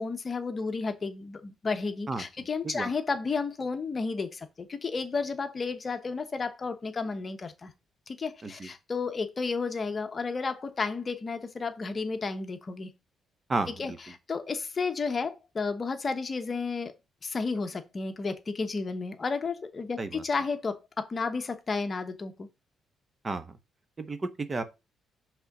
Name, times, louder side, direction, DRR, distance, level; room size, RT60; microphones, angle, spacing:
voice 1, 0.0-7.7 8.1-12.9 13.8-13.9 14.3-16.9 17.2-22.5, left 4 dB, 35° left, 1.1 m, -32 dB
voice 2, 13.5-14.0 20.0-20.2 23.2-23.6 24.0-24.6, right 3 dB, 30° right, 0.9 m, -32 dB
5.6 x 3.7 x 5.9 m
cardioid pair, 90°, 0 cm